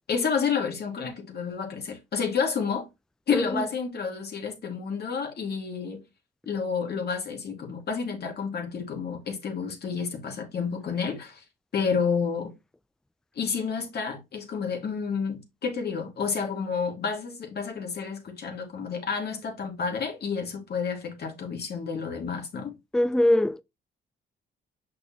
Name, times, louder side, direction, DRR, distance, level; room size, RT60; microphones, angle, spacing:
voice 1, 0.1-2.9 3.3-6.0 6.5-11.4 11.7-12.5 13.4-22.7, left 6 dB, 55° left, 2.5 m, -30 dB
voice 2, 3.3-3.6 22.9-23.6, left 1 dB, 5° left, 0.4 m, -22 dB
6.7 x 5.1 x 3.1 m
cardioid pair, 90°, 20 cm